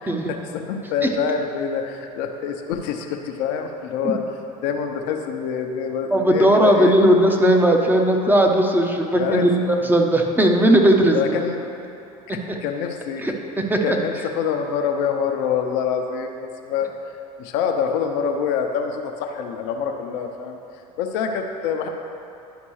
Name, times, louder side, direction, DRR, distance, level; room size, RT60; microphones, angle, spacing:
voice 1, 0.5-4.2 4.6-6.9 9.2-9.5 11.1-11.6 12.3-13.3 13.8-17.1 17.4-20.6 21.0-21.9, left 7 dB, 65° left, 4 dB, 0.8 m, -26 dB
voice 2, 6.1-11.4 12.5-12.6 13.2-13.3 13.7-14.0, right 1 dB, 10° right, 2 dB, 0.9 m, -17 dB
11.5 x 5.2 x 3.2 m, 2.8 s
hypercardioid pair, 75°, 19 cm